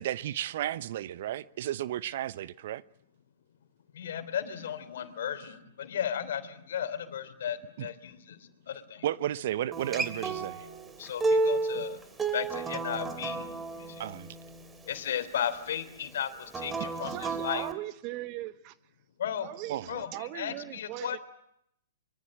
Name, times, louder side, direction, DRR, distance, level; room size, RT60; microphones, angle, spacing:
voice 1, 0.0-2.8 7.8-7.9 9.0-10.7 14.0-14.4 19.7-19.9, right 12 dB, 55° right, 0.9 m, -33 dB
voice 2, 3.9-9.1 11.0-12.0 12.3-14.0 14.8-17.1 17.4-17.7 19.2-19.5 19.9-21.2, left 9 dB, 60° left, 3.3 m, -35 dB
Acoustic guitar, 9.7-14.9 16.5-17.7, right 3 dB, 15° right, 2.8 m, -32 dB
voice 3, 17.0-18.7 19.4-21.2, right 16 dB, 40° right, 1.5 m, -39 dB
24.5 x 24.0 x 7.7 m
hypercardioid pair, 115°, 0 cm